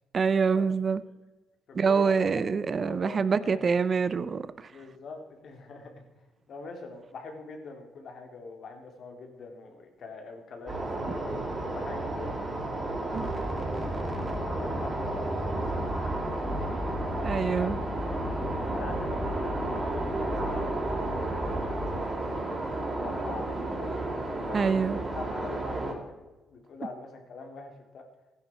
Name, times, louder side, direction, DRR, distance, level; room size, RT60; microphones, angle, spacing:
voice 1, 0.1-1.0 1.7-4.7 13.1-13.3 17.2-17.8 24.5-25.0, right 5 dB, 40° right, 15 dB, 0.7 m, -26 dB
voice 2, 1.7-2.4 2.8-3.8 4.7-6.0 6.5-12.4 13.1-16.9 17.2-17.7 18.1-22.5 23.0-24.1 24.5-28.1, left 4 dB, 60° left, 3 dB, 3.1 m, -43 dB
sound 1, 10.7-25.9, right 2 dB, 25° right, 4.6 m, -33 dB
sound 2, 13.1-21.9, equal, 5° right, 2.4 m, -36 dB
15.5 x 10.5 x 4.5 m, 1.1 s
cardioid pair, 90°, 0 cm